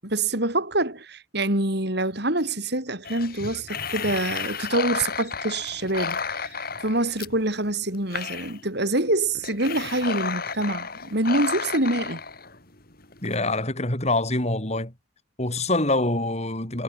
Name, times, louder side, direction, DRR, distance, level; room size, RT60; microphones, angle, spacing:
voice 1, 0.0-12.2, right 2 dB, 60° right, 7.6 m, -26 dB
sound 1, 3.0-13.4, left 5 dB, 50° left, 8.0 m, -32 dB
voice 2, 13.2-14.9 15.4-16.8, left 2 dB, 35° left, 4.8 m, -25 dB
head